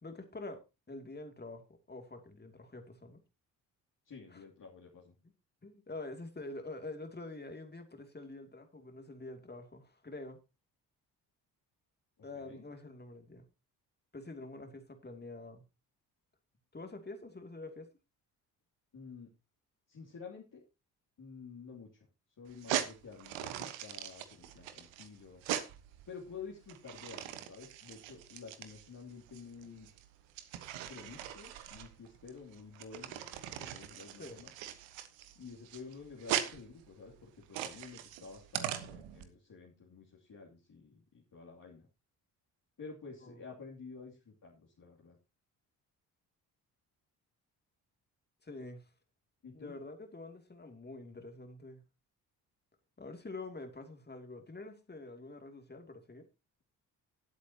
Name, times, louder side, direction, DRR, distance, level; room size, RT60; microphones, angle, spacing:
voice 1, 0.0-3.2 4.3-4.4 5.2-5.3 5.6-10.4 12.2-13.5 14.1-15.7 16.7-17.9 34.2-34.4 43.2-43.4 48.4-48.9 49.5-51.8 53.0-56.3, left 2 dB, 20° left, 2.7 m, -46 dB
voice 2, 4.0-5.1 12.3-12.6 18.9-19.3 19.9-20.6 21.2-22.1 22.4-25.4 26.1-29.9 30.9-33.2 33.6-34.5 35.3-41.9 42.8-45.2 49.4-49.7, left 5 dB, 40° left, 3.0 m, -50 dB
sound 1, 22.5-39.2, right 11 dB, 70° right, 1.4 m, -41 dB
17.5 x 8.3 x 2.9 m
hypercardioid pair, 45°, 47 cm